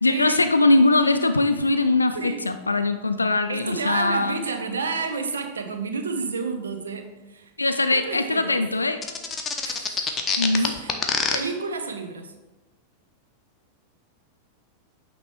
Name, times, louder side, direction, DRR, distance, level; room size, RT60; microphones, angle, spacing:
voice 1, 0.0-4.4 7.6-9.0 10.4-10.7, left 2 dB, 80° left, 8 dB, 0.3 m, -21 dB
voice 2, 3.5-7.5 7.9-8.6 9.6-10.1 10.5-10.9 11.3-12.3, right 4 dB, 70° right, 6 dB, 0.7 m, -30 dB
sound 1, 9.0-11.4, left 5 dB, 20° left, 0.7 m, -24 dB
8.7 x 3.0 x 4.5 m, 1.1 s
figure-of-eight pair, 90°, 0 cm